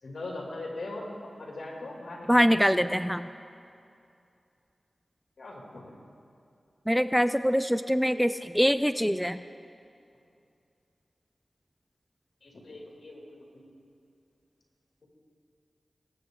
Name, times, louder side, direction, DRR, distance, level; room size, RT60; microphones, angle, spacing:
voice 1, 0.0-1.1 1.4-2.5 5.4-5.9 12.4-13.6, left 2 dB, 75° left, -2 dB, 2.6 m, -40 dB
voice 2, 2.3-3.3 6.9-9.4, equal, ahead, 12 dB, 0.3 m, -24 dB
22.0 x 7.9 x 3.8 m, 2.6 s
cardioid pair, 55°, 0 cm